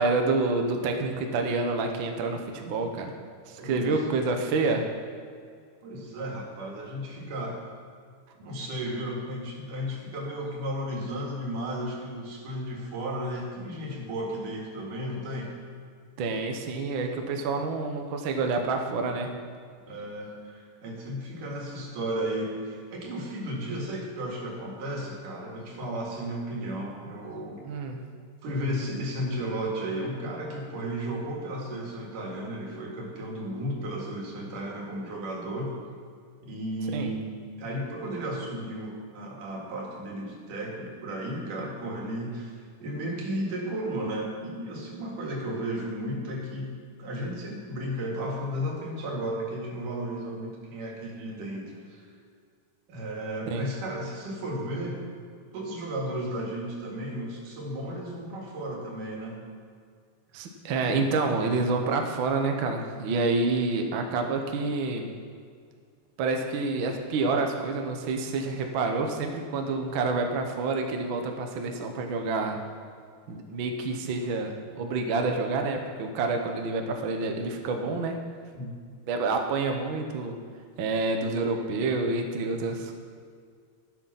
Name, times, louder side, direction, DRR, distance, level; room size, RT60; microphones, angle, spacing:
voice 1, 0.0-3.1 3.5-4.9 16.2-19.3 27.6-28.0 36.9-37.1 53.5-53.7 60.3-65.1 66.2-72.6 73.3-78.2 79.1-80.4 80.8-82.9, right 3 dB, 60° right, 4 dB, 1.3 m, -28 dB
voice 2, 3.6-3.9 5.8-7.7 8.4-15.5 19.9-27.6 28.4-35.7 36.4-46.7 47.0-52.1 52.9-55.0 55.5-59.4 78.6-78.7, right 1 dB, 85° right, -2 dB, 3.8 m, -34 dB
12.0 x 9.5 x 5.8 m, 2.2 s
omnidirectional pair, 3.6 m